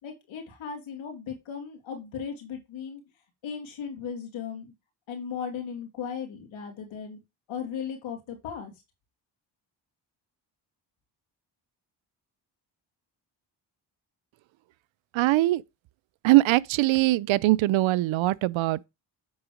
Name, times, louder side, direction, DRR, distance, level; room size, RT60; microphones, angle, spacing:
voice 1, 0.0-3.0 3.4-4.7 5.1-7.2 7.5-8.7, left 7 dB, 85° left, 2.8 m, -36 dB
voice 2, 15.2-15.6 16.2-18.9, right 18 dB, 75° right, 0.5 m, -22 dB
8.7 x 4.0 x 4.9 m
cardioid pair, 65°, 46 cm